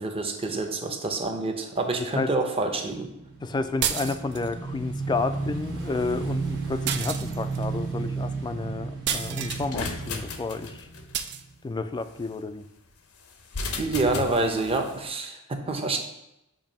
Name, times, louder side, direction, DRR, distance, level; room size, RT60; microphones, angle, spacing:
voice 1, 0.0-3.1 13.8-16.0, right 2 dB, 25° right, 3 dB, 0.7 m, -27 dB
Motorcycle / Engine, 3.0-11.5, right 4 dB, 70° right, 1.4 m, -33 dB
voice 2, 3.4-10.9 11.6-12.7, left 3 dB, 20° left, 10 dB, 0.3 m, -31 dB
sound 1, 3.8-4.5 6.9-7.6 9.1-9.7 11.1-11.4, right 9 dB, 50° right, 0.4 m, -30 dB
sound 2, 9.2-11.2 13.4-15.0, left 3 dB, 80° left, 0.7 m, -35 dB
7.1 x 2.8 x 5.2 m, 0.88 s
head